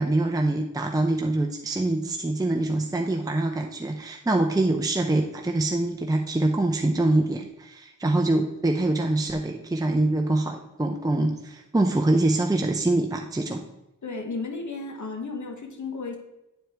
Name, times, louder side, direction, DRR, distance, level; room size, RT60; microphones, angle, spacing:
voice 1, 0.0-13.6, right 2 dB, 10° right, 2 dB, 0.6 m, -24 dB
voice 2, 14.0-16.2, left 3 dB, 60° left, 4 dB, 1.2 m, -33 dB
9.0 x 4.3 x 3.4 m, 0.92 s
cardioid pair, 55°, 32 cm